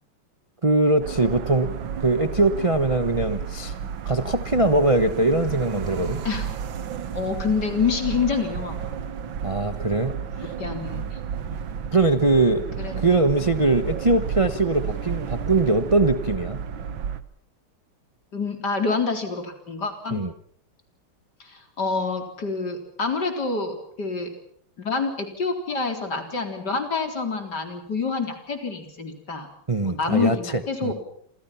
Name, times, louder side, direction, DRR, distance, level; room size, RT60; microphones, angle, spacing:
voice 1, 0.6-3.7 4.1-6.2 9.4-10.5 11.9-12.6 13.0-16.6 20.1-20.3 29.7-30.4 30.8-30.9, right 2 dB, 30° right, 10 dB, 0.6 m, -22 dB
sound 1, 1.0-17.2, right 7 dB, 65° right, 1.9 m, -32 dB
voice 2, 7.1-9.0 10.6-11.2 11.5-11.6 12.8-13.0 18.3-20.2 21.4-24.3 24.8-29.5 29.8-30.9, left 4 dB, 50° left, 5 dB, 4.5 m, -27 dB
28.0 x 27.5 x 5.9 m, 0.64 s
omnidirectional pair, 2.4 m